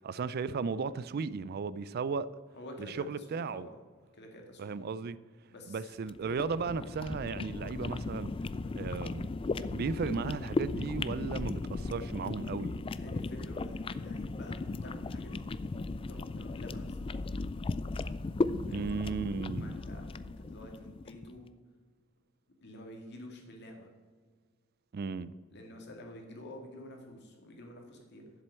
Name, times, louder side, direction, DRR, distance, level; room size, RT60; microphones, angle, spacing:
voice 1, 0.0-2.3 2.8-3.7 4.6-5.2 5.7-8.3 8.8-9.3 9.6-12.8 18.7-19.8 24.9-25.3, right 5 dB, 50° right, 0.4 m, -35 dB
voice 2, 2.5-3.8 4.1-4.6 5.5-5.9 12.9-15.5 16.1-17.0 18.7-19.0 19.5-21.4 22.6-23.9 25.5-28.2, left 1 dB, 55° left, 2.2 m, -49 dB
sound 1, 6.0-21.3, left 3 dB, 25° left, 0.3 m, -36 dB
7.8 x 7.5 x 7.5 m
head